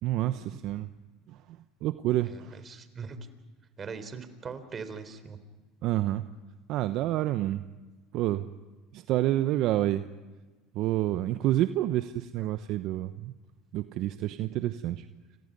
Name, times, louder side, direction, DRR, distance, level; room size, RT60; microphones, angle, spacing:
voice 1, 0.0-0.9 1.3-1.4 1.8-2.6 5.8-6.2 6.7-7.7 8.1-8.5 8.9-10.1 10.7-13.3 13.7-15.1, right 14 dB, 60° right, 11 dB, 0.9 m, -28 dB
voice 2, 2.2-3.2 3.8-5.4 12.4-12.5, right 5 dB, 35° right, 11 dB, 3.8 m, -41 dB
30.0 x 28.0 x 5.4 m, 1.3 s
hypercardioid pair, 85°, 0 cm